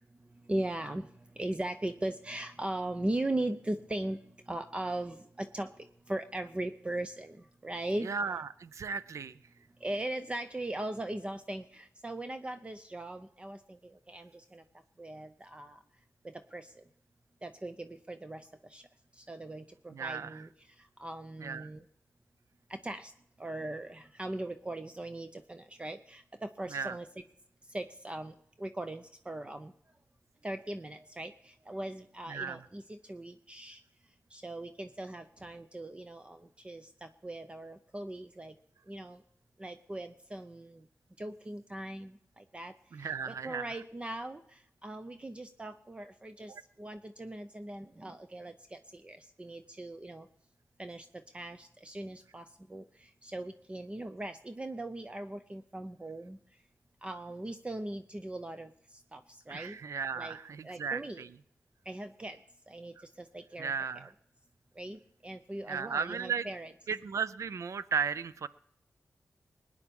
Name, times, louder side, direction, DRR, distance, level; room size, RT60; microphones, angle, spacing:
voice 1, 0.5-1.1 1.4-4.2 4.5-5.7 6.1-8.1 9.8-14.6 15.0-15.8 16.2-16.7 17.4-18.8 19.2-20.5 21.0-21.8 22.7-23.1 23.4-27.2 27.7-29.7 30.4-33.8 34.3-38.5 38.9-39.2 39.6-40.8 41.2-42.7 43.0-46.5 46.8-50.3 50.8-51.1 51.3-52.4 52.7-56.4 57.0-58.7 59.1-59.2 59.5-59.8 60.1-60.4 60.6-61.2 61.9-62.4 62.7-64.1 64.8-66.7, right 1 dB, 20° right, 8 dB, 0.6 m, -39 dB
voice 2, 8.0-9.3 19.9-20.4 21.4-21.7 26.7-27.0 32.3-32.6 42.9-43.8 46.5-46.6 59.5-61.3 63.6-64.1 65.7-66.5 66.9-68.5, right 6 dB, 70° right, 16 dB, 0.5 m, -35 dB
20.5 x 9.8 x 5.3 m, 0.74 s
wide cardioid pair, 120°, 5 cm